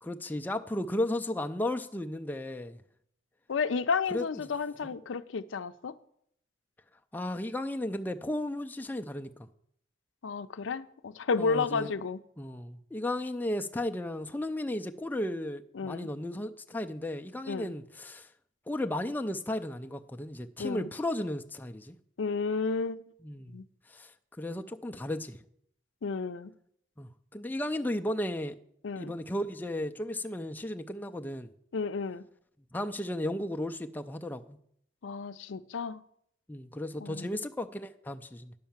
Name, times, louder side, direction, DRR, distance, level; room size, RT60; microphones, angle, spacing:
voice 1, 0.0-2.8 4.1-4.4 7.1-9.3 11.4-11.9 12.4-18.3 18.7-22.0 23.2-23.6 23.9-24.1 24.4-25.4 27.0-28.5 29.0-31.5 32.7-34.6 36.5-38.5, left 1 dB, 10° left, 0.4 m, -34 dB
voice 2, 3.5-5.9 10.2-12.2 15.8-16.1 17.5-17.7 20.6-20.9 22.2-23.0 23.5-23.6 26.0-26.5 28.8-29.1 31.7-32.2 35.0-36.0 37.0-37.4, left 5 dB, 85° left, 0.5 m, -32 dB
10.5 x 5.6 x 7.2 m
head